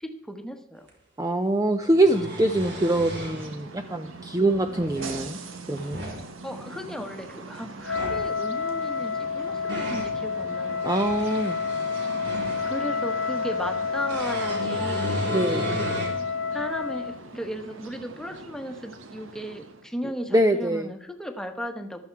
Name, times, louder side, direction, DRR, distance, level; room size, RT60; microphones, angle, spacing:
voice 1, 0.0-0.9 6.4-11.0 12.6-15.3 15.7-16.1 16.5-22.1, equal, 5° left, 6 dB, 1.2 m, -36 dB
sound 1, 0.9-1.0 1.8-3.5 4.5-5.3 5.7-6.2 7.8-8.3 9.2-10.1 10.7-12.9 14.1-16.2 16.7-16.8 18.4-18.5, right 1 dB, 60° right, 4.0 m, -34 dB
voice 2, 1.2-5.4 5.7-6.0 10.8-11.6 15.3-15.7 20.3-20.9, right 1 dB, 20° right, 7 dB, 0.6 m, -24 dB
sound 2, 1.9-20.0, right 3 dB, 90° right, 1.4 m, -42 dB
Wind instrument woodwind instrument, 7.8-17.2, left 5 dB, 85° left, 1.0 m, -29 dB
14.5 x 12.0 x 4.6 m, 0.71 s
head